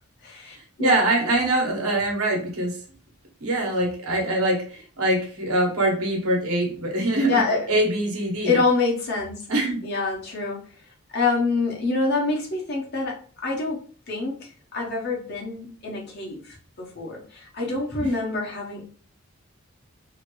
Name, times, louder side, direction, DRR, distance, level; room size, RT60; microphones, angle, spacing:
voice 1, 0.2-0.9 4.2-4.5 7.3-7.7 8.4-9.4 9.8-10.6 11.1-13.8 14.1-18.8, left 3 dB, 50° left, -2 dB, 1.0 m, -26 dB
voice 2, 0.8-2.8 3.4-7.4 7.7-8.6 9.5-9.8, right 1 dB, 85° right, 0 dB, 1.0 m, -23 dB
2.9 x 2.5 x 3.0 m, 0.42 s
head